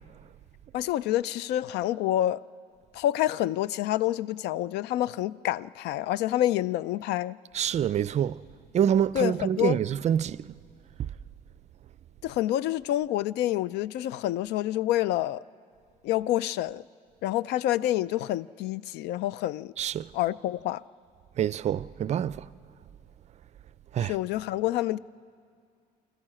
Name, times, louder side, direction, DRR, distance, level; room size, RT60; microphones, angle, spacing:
voice 1, 0.7-2.5 2.9-7.4 9.1-9.8 12.2-15.4 16.0-16.8 17.2-19.7 20.1-20.8 24.1-25.0, left 13 dB, 80° left, 0.4 m, -27 dB
voice 2, 7.5-8.4 8.7-10.5 19.8-20.1 21.4-22.5 23.9-24.2, right 9 dB, 40° right, 0.4 m, -26 dB
25.0 x 14.5 x 7.6 m
cardioid pair, 110°, 17 cm